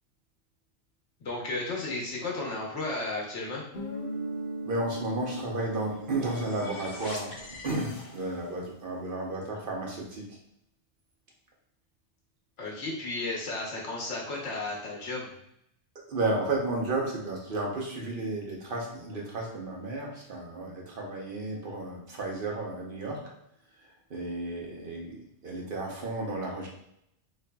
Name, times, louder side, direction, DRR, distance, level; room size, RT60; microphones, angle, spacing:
voice 1, 1.2-3.6 12.6-15.3, left 2 dB, 90° left, -3 dB, 1.4 m, -33 dB
Guitar, 3.7-8.3, right 1 dB, 65° left, 1.1 m, -39 dB
voice 2, 4.7-7.3 7.6-10.4 16.1-23.2 23.8-26.7, right 2 dB, 55° right, -2 dB, 0.9 m, -33 dB
sound 1, 5.7-8.6, left 1 dB, 30° left, 0.7 m, -43 dB
4.0 x 3.2 x 2.2 m, 0.76 s
omnidirectional pair, 1.2 m